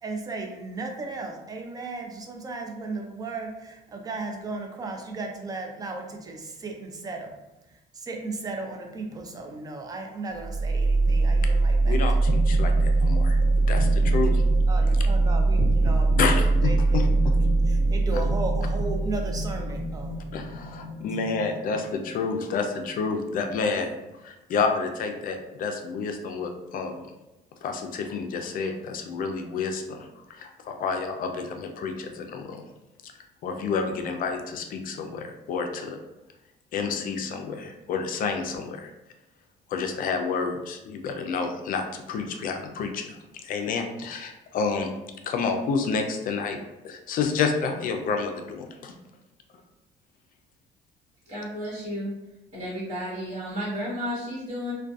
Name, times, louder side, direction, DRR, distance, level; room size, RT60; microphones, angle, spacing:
voice 1, 0.0-7.4 8.0-12.0 14.7-16.2 16.6-17.0 17.7-20.2, right 3 dB, 20° right, 3 dB, 0.4 m, -35 dB
sound 1, 10.4-22.3, right 2 dB, 75° right, 1.0 m, -22 dB
voice 2, 11.8-14.4 16.2-17.0 18.1-18.2 20.3-23.9 24.2-27.1 27.6-32.6 33.0-33.1 33.4-36.0 36.7-38.9 39.7-43.2 43.4-44.9 45.3-46.6 46.8-49.0, left 5 dB, 55° left, 5 dB, 0.4 m, -29 dB
voice 3, 51.3-52.1 52.5-54.7, equal, 45° right, -7 dB, 1.3 m, -32 dB
2.5 x 2.2 x 2.3 m, 0.99 s
cardioid pair, 110°, 17 cm